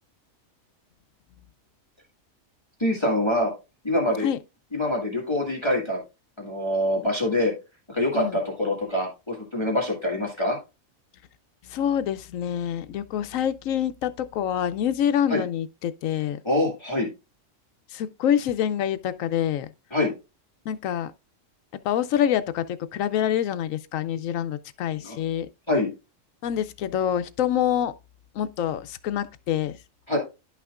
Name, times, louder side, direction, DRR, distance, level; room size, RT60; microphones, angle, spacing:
voice 1, 2.8-3.5 3.8-4.3 4.7-6.0 6.4-7.5 7.9-10.6 15.3-15.4 16.4-17.1 19.9-20.1 25.0-25.2 25.7-25.9 30.1-30.2, left 1 dB, 20° left, 1.8 m, -25 dB
voice 2, 11.7-16.4 17.9-19.7 20.7-21.1 21.8-25.5 26.4-27.9 28.4-29.7, left 10 dB, 80° left, 1.0 m, -26 dB
11.0 x 5.7 x 2.4 m
omnidirectional pair, 1.4 m